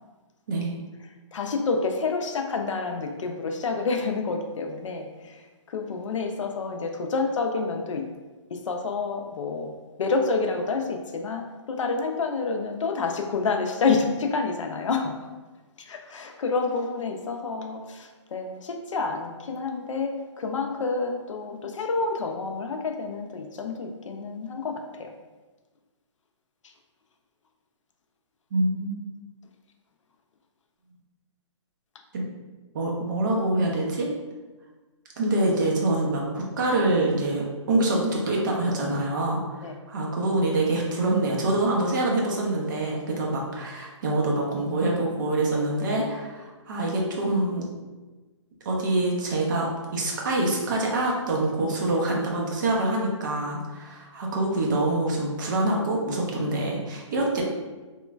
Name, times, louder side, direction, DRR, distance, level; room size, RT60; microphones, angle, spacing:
voice 1, 1.3-5.4 5.7-8.1 8.5-9.7 10.0-15.1 15.9-25.1 39.6-39.8, left 4 dB, 75° left, 4 dB, 0.4 m, -28 dB
voice 2, 28.5-29.0 32.1-32.3 32.7-34.1 35.2-47.7 48.6-57.4, right 2 dB, 40° right, -2 dB, 0.6 m, -25 dB
3.0 x 2.1 x 2.3 m, 1.3 s
hypercardioid pair, 155°, 16 cm